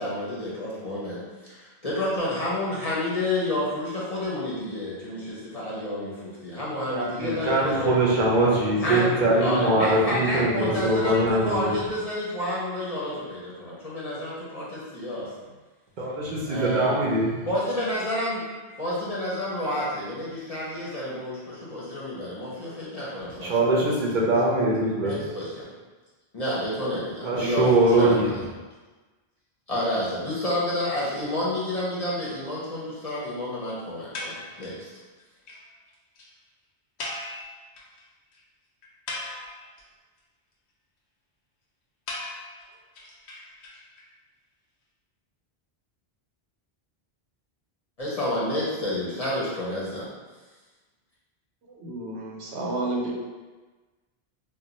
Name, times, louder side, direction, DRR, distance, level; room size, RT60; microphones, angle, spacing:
voice 1, 0.0-8.0 8.8-15.3 16.5-18.4 18.8-24.1 25.0-25.7 26.3-28.3 29.7-34.9 48.0-50.1, left 1 dB, 40° left, -8 dB, 0.6 m, -30 dB
voice 2, 6.9-11.7 16.0-17.3 23.4-25.2 27.2-28.2, right 2 dB, 55° right, -4 dB, 0.6 m, -22 dB
sound 1, 34.1-34.9 35.2-35.3 35.5-35.6 35.9-36.0 36.2-36.3 37.0-38.0 38.3-38.4 38.8-39.8 42.1-44.0, left 2 dB, 85° left, 0.9 m, -37 dB
voice 3, 51.7-53.1, right 2 dB, 85° right, -2 dB, 0.9 m, -31 dB
2.3 x 2.2 x 3.9 m, 1.3 s
omnidirectional pair, 1.1 m